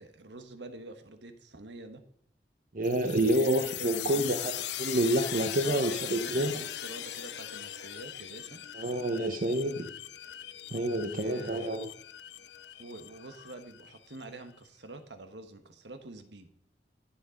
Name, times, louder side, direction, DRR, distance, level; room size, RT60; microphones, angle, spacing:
voice 1, 0.0-2.0 3.4-4.3 5.6-8.6 9.6-9.8 11.0-11.8 12.8-16.5, right 2 dB, 75° right, 8 dB, 1.3 m, -46 dB
voice 2, 2.7-4.5 4.8-6.6 8.7-9.9 10.7-11.9, right 1 dB, 50° right, 7 dB, 0.8 m, -28 dB
sound 1, 2.8-14.2, left 12 dB, 75° left, 0.6 m, -40 dB
12.5 x 7.4 x 5.1 m, 0.65 s
head